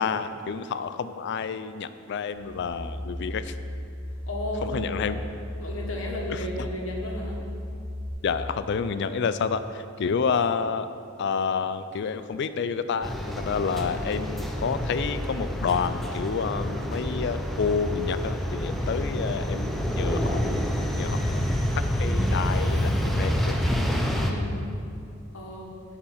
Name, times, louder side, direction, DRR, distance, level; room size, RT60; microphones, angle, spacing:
voice 1, 0.0-3.5 4.6-5.2 6.3-6.7 8.2-10.9 11.2-20.4 20.9-21.4 22.0-23.6, left 6 dB, 55° left, 12 dB, 0.4 m, -29 dB
sound 1, 2.3-8.1, left 1 dB, 60° right, 1.3 m, -36 dB
voice 2, 4.2-5.2 5.6-7.4 18.8-19.1 24.1-24.5 25.3-25.7, left 1 dB, 70° left, -1 dB, 1.4 m, -34 dB
sound 2, 13.0-24.3, equal, ahead, 0.5 m, -27 dB
10.5 x 4.4 x 5.7 m, 2.5 s
head